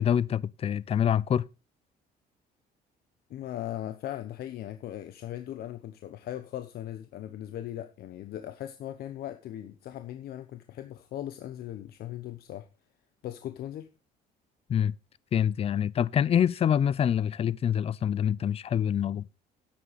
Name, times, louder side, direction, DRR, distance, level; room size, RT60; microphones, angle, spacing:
voice 1, 0.0-1.5 14.7-14.9 15.3-19.3, left 9 dB, 35° left, 0.5 m, -26 dB
voice 2, 3.3-12.7 13.2-13.9, left 12 dB, 65° left, 1.0 m, -38 dB
10.5 x 7.5 x 5.2 m
cardioid pair, 110°, 17 cm